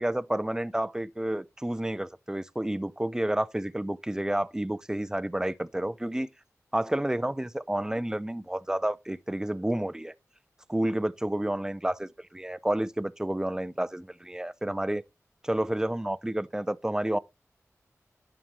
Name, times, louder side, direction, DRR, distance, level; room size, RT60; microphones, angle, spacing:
voice 1, 0.0-6.3 6.7-10.1 10.7-15.0 15.4-17.2, right 1 dB, 10° right, 0.5 m, -30 dB
11.0 x 4.9 x 2.9 m
wide cardioid pair, 60°, 6 cm